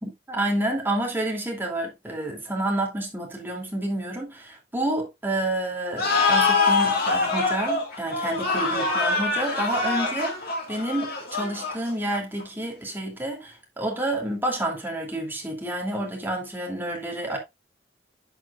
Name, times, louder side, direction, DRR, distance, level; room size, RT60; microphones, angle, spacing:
voice 1, 0.0-17.4, right 1 dB, 10° right, 2.6 m, -29 dB
sound 1, 6.0-12.4, left 3 dB, 55° left, 2.6 m, -24 dB
11.0 x 6.1 x 2.4 m
head